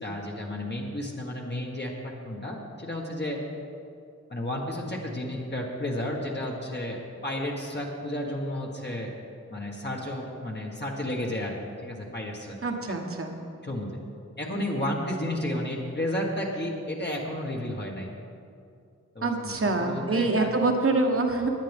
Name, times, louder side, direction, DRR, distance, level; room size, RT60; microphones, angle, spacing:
voice 1, 0.0-3.4 4.3-9.1 9.5-11.6 11.8-12.6 13.6-13.9 14.4-18.1 19.1-20.5, left 1 dB, 35° left, -2 dB, 1.7 m, -32 dB
voice 2, 12.6-13.3 19.2-21.5, right 3 dB, 45° right, 3 dB, 1.3 m, -25 dB
18.0 x 10.5 x 3.6 m, 2.5 s
wide cardioid pair, 95°, 30 cm